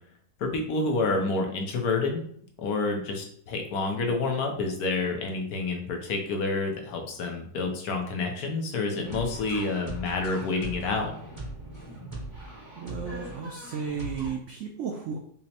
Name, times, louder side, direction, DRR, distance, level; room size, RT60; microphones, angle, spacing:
voice 1, 0.4-2.2 2.6-11.1, left 3 dB, 70° left, 3 dB, 1.1 m, -28 dB
sound 1, 9.0-14.3, right 1 dB, 20° right, 0.9 m, -40 dB
voice 2, 12.8-15.2, right 6 dB, 75° right, 1 dB, 0.6 m, -34 dB
5.4 x 2.0 x 2.8 m, 0.62 s
omnidirectional pair, 1.8 m